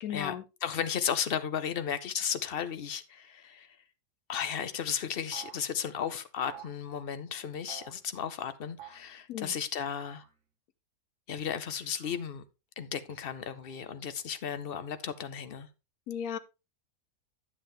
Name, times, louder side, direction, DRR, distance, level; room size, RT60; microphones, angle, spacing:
voice 1, 0.0-0.4 9.3-9.5 16.1-16.4, left 9 dB, 70° left, 1.1 m, -35 dB
voice 2, 0.6-3.8 4.3-10.2 11.3-12.4 12.8-15.7, left 8 dB, 50° left, 0.7 m, -34 dB
sound 1, 5.3-5.6 6.4-6.8 7.7-8.0 8.8-9.1 10.0-10.3 11.7-12.2 13.1-13.8, right 8 dB, 55° right, 1.5 m, -50 dB
9.8 x 7.4 x 3.3 m
omnidirectional pair, 1.7 m